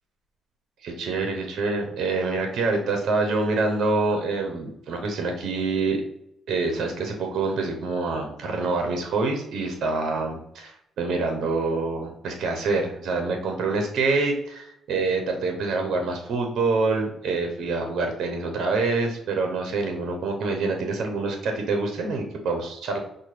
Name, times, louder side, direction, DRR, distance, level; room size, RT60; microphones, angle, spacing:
voice 1, 0.8-6.0 6.5-23.0, right 3 dB, 70° right, 3 dB, 0.7 m, -26 dB
5.4 x 2.2 x 3.2 m, 0.76 s
cardioid pair, 90°, 0 cm